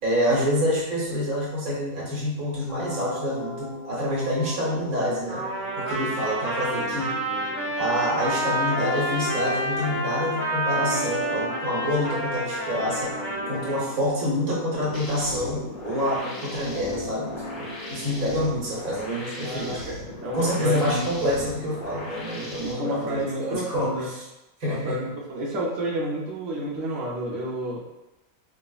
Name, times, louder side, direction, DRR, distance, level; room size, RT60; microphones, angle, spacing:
voice 1, 0.0-5.4 5.8-7.2 7.8-13.2 13.5-19.8 20.3-24.2 24.6-25.0, equal, 85° right, -5 dB, 1.5 m, -27 dB
sound 1, 2.7-18.7, left 2 dB, 55° left, 0.5 m, -39 dB
Trumpet, 5.3-13.8, right 1 dB, 5° right, 0.9 m, -29 dB
sound 2, 14.9-22.7, left 2 dB, 30° left, 1.1 m, -39 dB
voice 2, 19.4-21.1 21.4-21.5 22.6-24.1 24.6-27.8, right 1 dB, 65° right, -5 dB, 1.0 m, -30 dB
4.8 x 2.0 x 2.3 m, 0.97 s
omnidirectional pair, 1.5 m